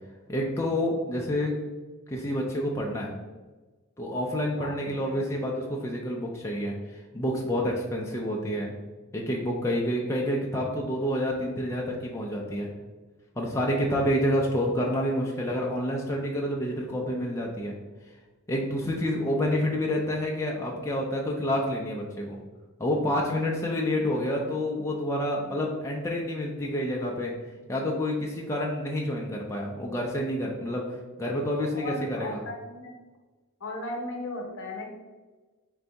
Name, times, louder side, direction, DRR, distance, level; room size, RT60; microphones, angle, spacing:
voice 1, 0.3-1.5 2.1-3.1 4.0-8.7 9.1-12.7 13.4-17.7 18.5-22.4 22.8-27.3 27.7-32.4, left 1 dB, 15° left, -2 dB, 0.4 m, -28 dB
voice 2, 4.5-5.2 31.6-32.9 33.6-34.9, left 2 dB, 60° left, 0 dB, 0.9 m, -36 dB
3.9 x 2.6 x 3.3 m, 1.3 s
head